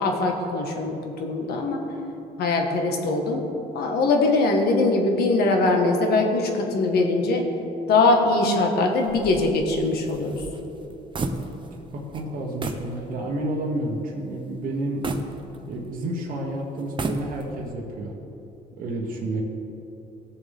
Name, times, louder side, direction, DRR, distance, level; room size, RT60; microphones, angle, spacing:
voice 1, 0.0-1.8 2.4-3.4 3.7-7.4 7.9-10.4, left 3 dB, 70° left, 2 dB, 1.6 m, -22 dB
sound 1, 9.0-11.9 12.1-12.3 12.6-12.9 13.4-13.5 15.0-16.0 16.8-17.7, right 3 dB, 30° right, 0.8 m, -32 dB
voice 2, 11.7-15.1 15.7-18.1 18.8-19.4, right 1 dB, 55° right, -3 dB, 1.4 m, -30 dB
18.0 x 7.1 x 3.6 m, 3.0 s
cardioid pair, 110°, 17 cm